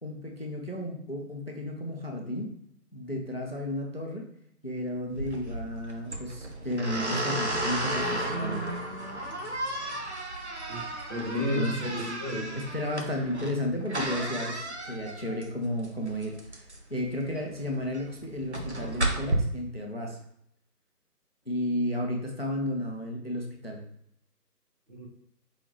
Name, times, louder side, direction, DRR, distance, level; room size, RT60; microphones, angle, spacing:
voice 1, 0.0-2.5 2.9-4.3 4.6-8.6 11.3-12.0 12.6-20.2 21.5-23.8, left 1 dB, 40° left, 1 dB, 0.5 m, -33 dB
sound 1, 5.1-19.4, right 1 dB, 45° right, 0.6 m, -33 dB
voice 2, 11.1-12.5 24.9-25.1, equal, 30° right, -5 dB, 1.0 m, -32 dB
4.7 x 3.4 x 2.6 m, 0.73 s
figure-of-eight pair, 160°, 49 cm